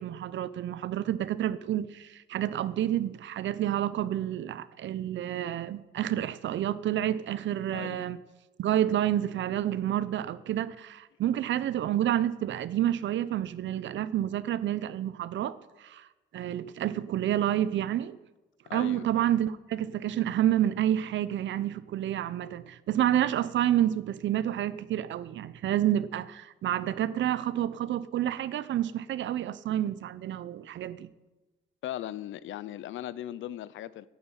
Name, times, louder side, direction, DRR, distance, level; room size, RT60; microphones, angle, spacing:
voice 1, 0.0-8.2 8.6-16.1 16.3-18.2 18.7-31.1, right 11 dB, 70° right, 0.8 m, -29 dB
voice 2, 7.7-8.1 18.7-19.1 31.8-34.1, left 12 dB, 80° left, 0.7 m, -38 dB
11.0 x 9.7 x 9.0 m
cardioid pair, 90°, 20 cm